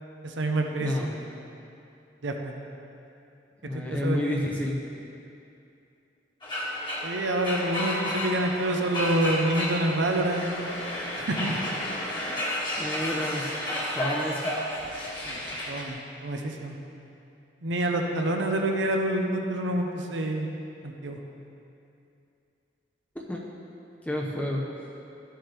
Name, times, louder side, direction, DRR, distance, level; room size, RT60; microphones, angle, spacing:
voice 1, 0.2-1.1 2.2-2.5 3.9-4.4 7.0-10.5 11.2-11.6 15.3-15.4 15.7-16.8 17.6-20.5 20.8-21.2, right 1 dB, 80° right, 3 dB, 0.8 m, -27 dB
voice 2, 0.8-1.1 3.6-4.8 12.7-13.4 13.9-14.4 23.2-23.4 24.1-24.6, left 1 dB, 10° left, -2 dB, 0.7 m, -29 dB
sound 1, 6.4-15.9, left 1 dB, 25° left, 1.6 m, -32 dB
13.5 x 7.6 x 3.4 m, 2.7 s
head